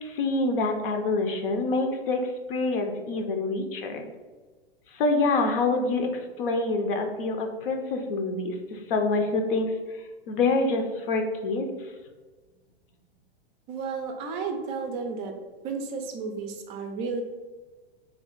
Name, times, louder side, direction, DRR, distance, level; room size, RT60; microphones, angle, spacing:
voice 1, 0.0-4.1 4.9-11.9, left 3 dB, 60° left, 5 dB, 0.7 m, -26 dB
voice 2, 13.7-15.3 15.6-17.2, right 5 dB, 30° right, 4 dB, 0.4 m, -32 dB
3.4 x 2.4 x 3.7 m, 1.4 s
hypercardioid pair, 105°, 32 cm